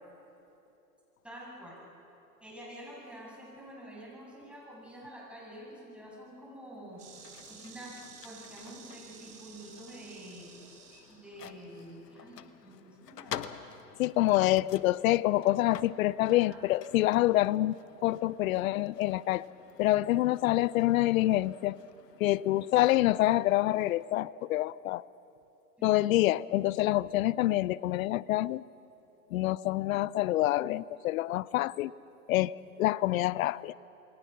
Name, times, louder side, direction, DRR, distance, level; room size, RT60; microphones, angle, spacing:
voice 1, 1.2-1.8 2.4-7.0 7.5-7.9 8.2-10.5 11.1-13.4 16.3-16.6 25.8-25.9, right 1 dB, ahead, -5 dB, 7.8 m, -48 dB
sound 1, 6.9-24.1, left 9 dB, 80° left, 1.2 m, -49 dB
Insect, 7.0-12.0, right 6 dB, 75° right, 4.8 m, -53 dB
voice 2, 14.0-19.5 19.8-21.8 22.2-25.0 25.8-28.6 29.3-31.9 32.3-33.7, left 16 dB, 60° left, 21 dB, 0.6 m, -27 dB
28.5 x 23.0 x 5.9 m, 3.0 s
hypercardioid pair, 115°, 47 cm